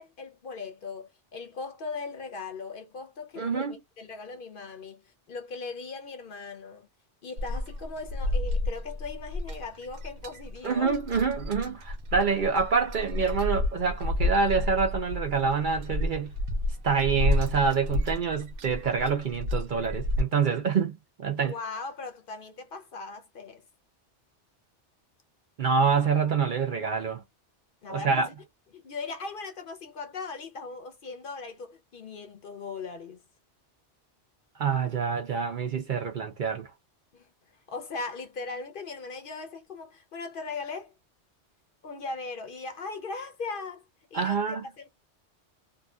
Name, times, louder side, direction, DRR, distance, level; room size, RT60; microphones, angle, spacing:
voice 1, 0.0-6.9 7.2-11.0 21.4-23.6 27.8-28.3 28.7-33.2 37.1-37.3 37.7-40.9 41.8-44.9, left 4 dB, 55° left, 0.7 m, -39 dB
voice 2, 3.4-3.7 10.6-16.3 16.8-21.5 25.6-27.2 27.9-28.3 34.6-36.7 44.1-44.6, right 5 dB, 55° right, 0.6 m, -26 dB
sound 1, 7.4-20.2, left 1 dB, 85° right, 0.9 m, -30 dB
2.6 x 2.5 x 2.2 m
omnidirectional pair, 1.2 m